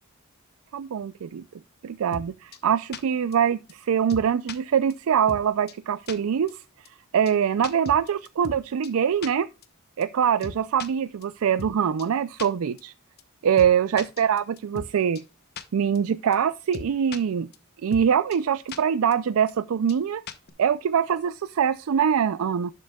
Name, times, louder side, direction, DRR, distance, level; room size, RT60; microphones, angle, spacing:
voice 1, 0.7-1.4 1.8-6.6 7.1-9.5 10.0-12.9 13.4-15.2 15.7-17.5 17.8-20.2 20.6-22.7, right 8 dB, 80° right, 0.4 m, -23 dB
sound 1, 2.1-2.3 2.5-2.6 2.9-3.0 3.3-3.4 3.7-3.8 4.1-4.6 4.9-5.0 5.3-5.4 5.7-5.8 6.1-6.2 6.5-6.6 6.8-6.9 7.3-7.4 7.6-8.6 8.8-8.9 9.2-9.3 9.6-9.7 10.0-10.1 10.4-10.9 11.2-11.3 11.6-11.7 12.0-12.1 12.4-12.5 12.8-12.9 13.2-13.3 13.6-13.7 14.0-14.9 15.1-15.2 15.6-15.7 15.9-16.0 16.3-16.4 16.7-17.2 17.5-17.6 17.9-18.0 18.3-18.4 18.7-18.8 19.1-19.2 19.5-19.6 19.9-20.0 20.3-20.5, left 4 dB, 50° left, 0.9 m, -37 dB
11.5 x 7.5 x 2.3 m
head